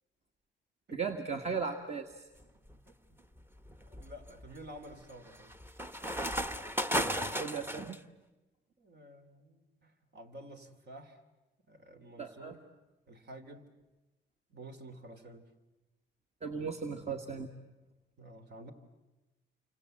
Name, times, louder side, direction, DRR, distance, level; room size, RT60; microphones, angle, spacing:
voice 1, 0.9-2.3 7.4-8.0 12.2-12.6 16.4-17.5, right 5 dB, 35° right, 6 dB, 1.8 m, -37 dB
sound 1, 2.4-2.8 3.4-8.0, equal, 10° right, 1.2 m, -35 dB
voice 2, 2.9-3.2 3.8-5.6 8.8-11.2 11.7-12.6 13.1-13.7 14.5-15.5 18.2-18.7, right 1 dB, 60° right, 7 dB, 3.1 m, -51 dB
29.5 x 25.5 x 7.9 m, 1.1 s
cardioid pair, 90°, 20 cm